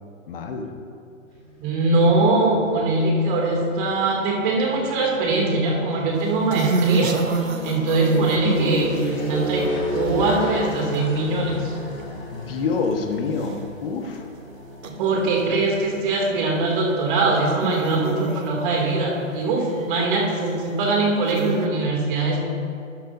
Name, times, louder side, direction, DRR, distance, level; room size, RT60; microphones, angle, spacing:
voice 1, 0.3-0.7 12.3-14.3, left 4 dB, 45° left, 4 dB, 1.3 m, -27 dB
sound 1, 1.3-16.8, left 2 dB, 20° left, 2.3 m, -35 dB
voice 2, 1.6-7.2 7.6-9.6 9.9-11.7 15.0-22.4, right 2 dB, 40° right, -1 dB, 2.5 m, -22 dB
sound 2, 6.2-11.3 11.7-12.1 12.6-12.7 12.9-13.0 13.5-13.6 14.8-14.9 15.9-16.2 16.8-16.9 17.2-18.8 19.3-19.8 20.5-20.6 21.3-21.7, right 5 dB, 80° right, 1.1 m, -27 dB
12.0 x 11.5 x 2.6 m, 2.4 s
figure-of-eight pair, 130°, 39 cm